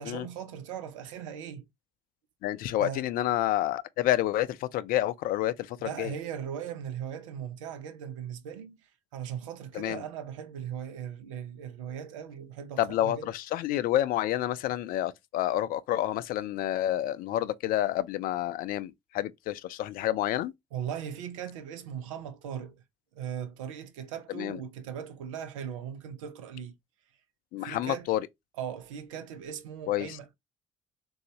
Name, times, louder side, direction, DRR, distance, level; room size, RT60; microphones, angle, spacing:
voice 1, 0.0-1.7 2.8-3.0 5.8-13.3 20.7-22.8 23.1-26.7 27.6-28.1 28.6-30.3, right 9 dB, 85° right, 0.5 m, -39 dB
voice 2, 2.4-6.1 9.7-10.0 12.8-20.5 24.3-24.6 27.5-28.3 29.9-30.2, left 13 dB, 65° left, 0.4 m, -29 dB
3.8 x 2.3 x 2.7 m
hypercardioid pair, 50°, 16 cm